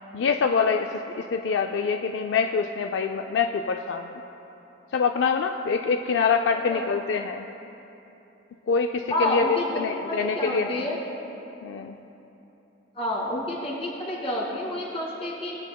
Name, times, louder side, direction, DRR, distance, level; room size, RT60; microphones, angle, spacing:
voice 1, 0.1-4.2 4.9-7.5 8.7-9.4 9.8-10.9 11.6-12.0, left 5 dB, 75° left, 5 dB, 0.3 m, -25 dB
voice 2, 6.7-7.0 9.1-11.0 12.9-15.6, left 1 dB, 35° left, -5 dB, 2.4 m, -29 dB
20.0 x 8.3 x 2.3 m, 3.0 s
head